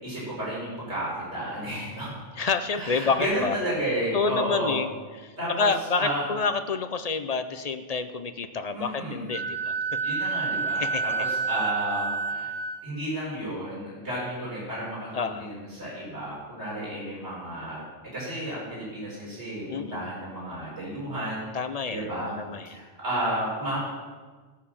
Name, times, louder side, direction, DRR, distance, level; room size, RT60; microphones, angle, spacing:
voice 1, 0.0-2.1 2.7-4.8 5.4-5.7 6.0-6.3 8.7-9.3 10.0-12.5 12.8-17.8 18.1-21.4 21.9-22.3 22.7-23.8, right 1 dB, 60° right, -6 dB, 5.3 m, -32 dB
voice 2, 2.4-3.6 4.1-4.9 5.2-9.8 10.7-11.0 15.1-15.5 19.7-20.1 21.5-22.0 22.4-22.8, left 4 dB, 40° left, 9 dB, 0.6 m, -28 dB
Wind instrument woodwind instrument, 9.3-12.8, right 4 dB, 75° right, 2.7 m, -29 dB
18.0 x 6.6 x 7.3 m, 1.4 s
omnidirectional pair, 1.3 m